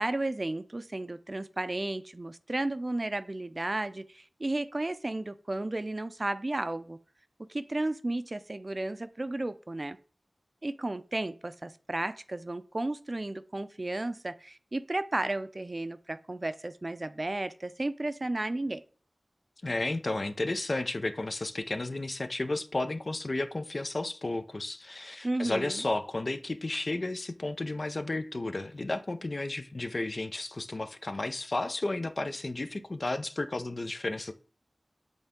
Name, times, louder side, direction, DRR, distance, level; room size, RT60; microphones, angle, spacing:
voice 1, 0.0-7.0 7.5-10.0 10.6-18.8 25.2-25.8, right 2 dB, 40° right, 0.5 m, -33 dB
voice 2, 19.6-34.3, left 2 dB, 55° left, 0.6 m, -33 dB
8.0 x 3.8 x 3.6 m
wide cardioid pair, 45°, 0 cm